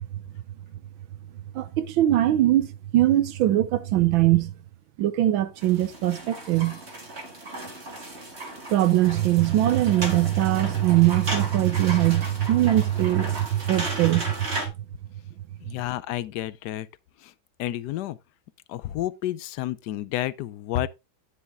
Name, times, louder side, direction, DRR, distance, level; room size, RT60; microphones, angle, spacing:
voice 1, 1.5-4.5 5.0-6.8 8.7-14.6, right 14 dB, 80° right, 1.5 m, -21 dB
sound 1, 5.6-14.7, right 1 dB, 35° right, 2.1 m, -36 dB
voice 2, 15.6-16.9 17.2-17.3 17.6-18.2 18.7-20.9, left 13 dB, 70° left, 1.0 m, -30 dB
9.8 x 6.4 x 3.5 m
omnidirectional pair, 2.1 m